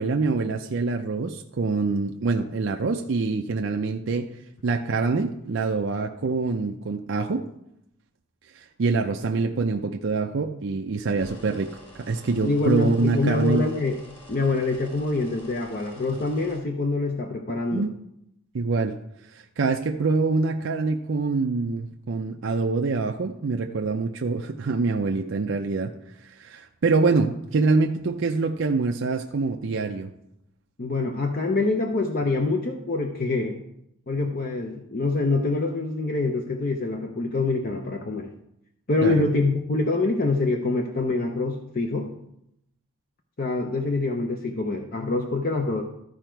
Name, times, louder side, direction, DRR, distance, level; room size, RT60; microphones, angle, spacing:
voice 1, 0.0-4.3 4.6-7.5 8.5-13.6 17.7-17.9 18.5-19.0 19.3-25.9 26.2-30.1 39.0-39.2, right 3 dB, 60° right, 3 dB, 0.5 m, -25 dB
sound 1, 11.1-16.6, equal, 25° left, 1.9 m, -48 dB
voice 2, 12.4-14.0 14.3-17.8 30.8-33.6 34.1-38.3 38.9-42.1 43.4-45.8, left 3 dB, 40° left, 3 dB, 0.6 m, -25 dB
13.0 x 4.9 x 4.5 m, 0.79 s
head